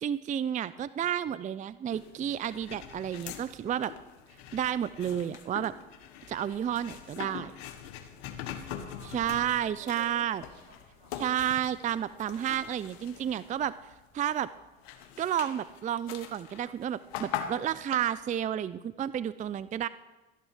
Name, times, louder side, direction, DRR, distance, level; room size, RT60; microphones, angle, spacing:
voice 1, 0.0-3.9 4.5-5.7 6.3-7.5 9.1-10.4 11.2-13.7 14.1-14.5 15.2-19.9, right 10 dB, 25° right, 17 dB, 0.4 m, -31 dB
sound 1, 1.9-14.1 14.5-18.2, left 9 dB, 75° left, 1.3 m, -43 dB
voice 2, 8.7-11.7 11.9-12.1, right 2 dB, 80° right, -1 dB, 4.3 m, -54 dB
12.5 x 11.0 x 5.6 m, 1.1 s
hypercardioid pair, 70°, 31 cm